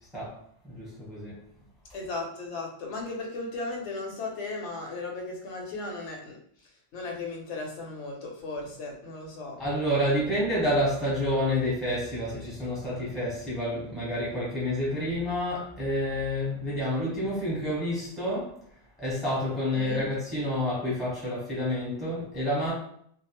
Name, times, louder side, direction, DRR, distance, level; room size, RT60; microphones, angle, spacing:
voice 1, 0.6-1.4 9.6-18.6 19.0-22.7, left 1 dB, ahead, -6 dB, 0.9 m, -29 dB
voice 2, 1.9-6.4 6.9-9.6 19.7-20.1, left 3 dB, 80° left, 1 dB, 0.9 m, -36 dB
2.3 x 2.1 x 2.9 m, 0.64 s
omnidirectional pair, 1.2 m